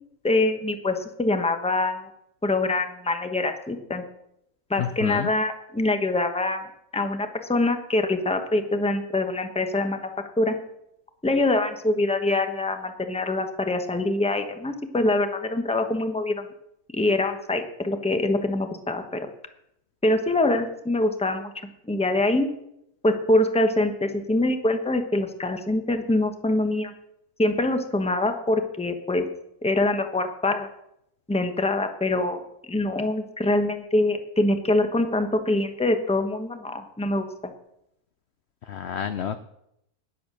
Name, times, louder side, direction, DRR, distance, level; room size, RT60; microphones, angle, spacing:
voice 1, 0.2-2.1 2.4-4.0 4.7-6.7 6.9-10.1 10.4-10.5 11.2-16.4 16.9-19.2 20.0-21.5 21.9-22.5 23.0-26.9 27.4-29.2 29.6-30.7 31.3-32.4 32.7-37.5, left 2 dB, 5° left, 7 dB, 0.9 m, -24 dB
voice 2, 4.8-5.3 38.7-39.4, left 8 dB, 60° left, 11 dB, 0.7 m, -29 dB
12.0 x 10.5 x 6.3 m, 0.79 s
omnidirectional pair, 1.7 m